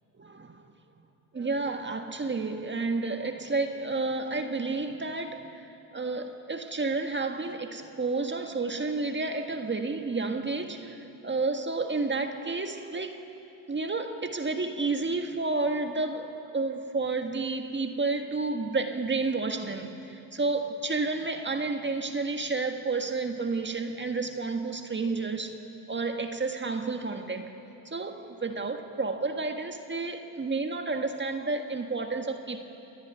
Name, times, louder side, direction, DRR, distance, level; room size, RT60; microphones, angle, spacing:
voice 1, 0.1-0.6 1.3-13.2 13.7-25.6 25.9-27.5 27.8-32.6, right 3 dB, 20° right, 5 dB, 1.6 m, -31 dB
29.0 x 10.5 x 9.6 m, 2.9 s
supercardioid pair, 80°, 50 cm